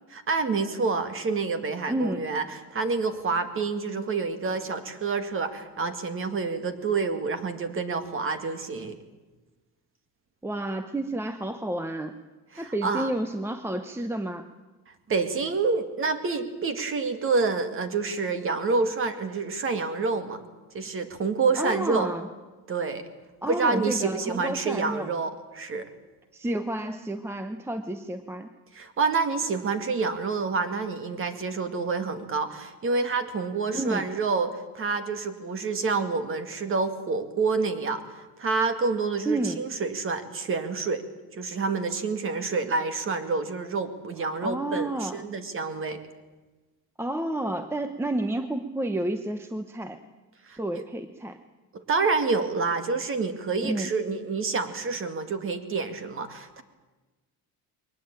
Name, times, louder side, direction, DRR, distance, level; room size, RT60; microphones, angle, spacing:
voice 1, 0.1-9.0 12.5-13.1 15.1-20.4 20.7-22.1 22.7-23.0 23.5-25.9 28.7-38.0 38.4-41.0 41.3-46.0 50.5-50.6 51.7-56.6, right 4 dB, 35° right, 9 dB, 2.1 m, -28 dB
voice 2, 1.9-2.2 10.4-12.2 12.6-14.4 21.6-22.3 23.4-25.1 26.3-28.5 33.7-34.1 39.3-39.6 44.4-45.2 47.0-50.0 50.5-51.4 53.6-53.9, right 1 dB, 5° right, 9 dB, 0.8 m, -30 dB
22.0 x 19.0 x 8.9 m, 1.2 s
cardioid pair, 150°, 39 cm